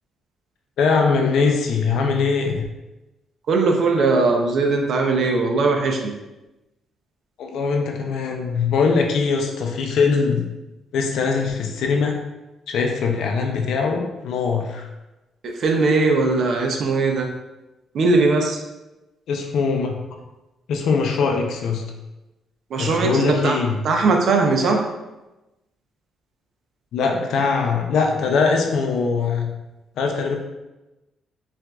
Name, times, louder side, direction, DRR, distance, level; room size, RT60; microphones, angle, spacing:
voice 1, 0.8-2.6 7.4-10.5 10.9-12.2 12.7-14.9 19.3-20.0 20.7-21.9 22.8-23.8 26.9-29.5 30.0-30.4, left 5 dB, 75° left, 3 dB, 0.6 m, -21 dB
voice 2, 3.5-6.1 15.4-17.3 17.9-18.6 22.7-23.6 23.8-24.8, right 3 dB, 65° right, 2 dB, 0.7 m, -19 dB
5.8 x 2.6 x 2.3 m, 1.0 s
cardioid pair, 90°, 0 cm